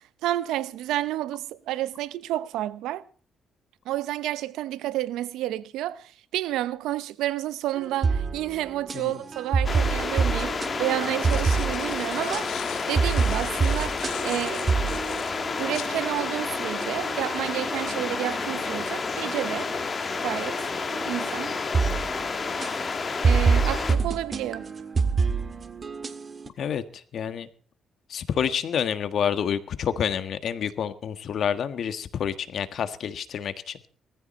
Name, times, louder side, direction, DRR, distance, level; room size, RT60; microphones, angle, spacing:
voice 1, 0.2-3.0 3.9-15.0 15.6-19.7 20.2-20.6 21.1-21.5 23.2-24.8, right 14 dB, 90° right, 0.8 m, -30 dB
sound 1, 7.8-26.5, right 5 dB, 35° right, 1.8 m, -28 dB
sound 2, 9.6-23.9, left 4 dB, 35° left, 2.1 m, -30 dB
sound 3, 11.2-15.9, left 11 dB, 85° left, 1.8 m, -41 dB
voice 2, 26.6-27.5 28.1-33.8, left 8 dB, 65° left, 1.6 m, -28 dB
19.0 x 14.5 x 4.4 m
cardioid pair, 90°, 0 cm